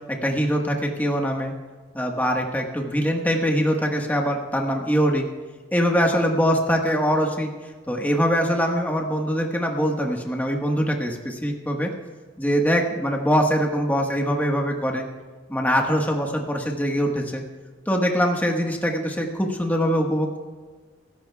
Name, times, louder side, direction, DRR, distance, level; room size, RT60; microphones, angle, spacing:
voice 1, 0.1-1.5 1.9-5.3 5.7-7.5 7.9-11.9 12.4-15.0 15.5-17.4 17.9-20.4, equal, 10° left, 1 dB, 1.4 m, -23 dB
25.5 x 14.0 x 2.4 m, 1.4 s
head